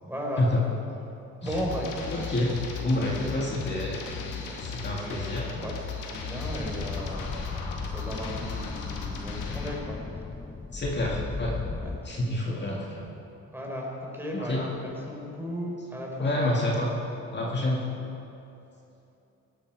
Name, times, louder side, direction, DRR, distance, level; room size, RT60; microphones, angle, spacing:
voice 1, 0.0-0.4 1.4-2.5 3.3-3.7 4.3-10.0 11.8-11.9 13.5-16.7 17.3-17.5, equal, 5° right, -2 dB, 4.1 m, -36 dB
sound 1, 1.5-9.8, left 5 dB, 90° left, 1.9 m, -36 dB
voice 2, 2.1-2.5 2.8-4.0 4.6-5.6 10.7-11.5 12.0-13.0 14.3-14.7 16.2-16.9 17.3-17.9, left 1 dB, 35° left, -3 dB, 2.1 m, -28 dB
sound 2, 6.4-12.0, left 3 dB, 20° left, 0.7 m, -36 dB
17.5 x 13.0 x 4.8 m, 2.9 s
cardioid pair, 90°, 30 cm